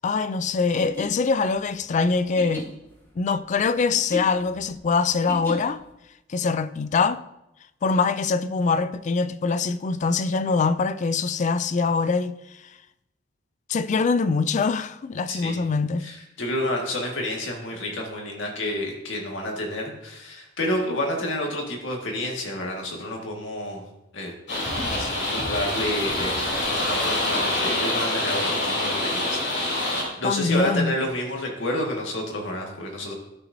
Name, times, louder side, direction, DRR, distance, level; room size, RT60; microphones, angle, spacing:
voice 1, 0.0-2.7 3.2-5.8 6.3-7.2 7.8-12.3 13.7-16.0 30.2-31.0, left 4 dB, 40° left, 0.3 m, -23 dB
sound 1, 0.8-5.9, equal, 10° left, 1.5 m, -38 dB
voice 2, 16.0-23.9 24.1-24.3 24.9-33.1, left 1 dB, 85° left, 1.8 m, -30 dB
sound 2, 24.5-30.0, left 1 dB, 65° left, 3.0 m, -26 dB
12.5 x 5.9 x 2.7 m
head